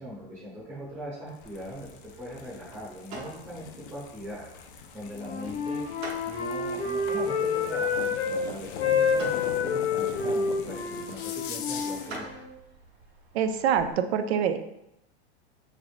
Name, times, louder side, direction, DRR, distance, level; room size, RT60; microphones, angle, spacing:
voice 1, 0.0-12.3, equal, 10° right, -8 dB, 0.8 m, -41 dB
sound 1, 1.3-12.3, left 6 dB, 50° left, 0.5 m, -42 dB
sound 2, 1.4-13.9, right 2 dB, 50° right, 1.1 m, -48 dB
Wind instrument woodwind instrument, 5.1-8.4 8.7-12.5, left 5 dB, 75° left, 0.8 m, -28 dB
voice 2, 13.3-14.7, right 8 dB, 70° right, 9 dB, 0.5 m, -25 dB
3.7 x 3.4 x 2.4 m, 0.82 s
supercardioid pair, 155°, 33 cm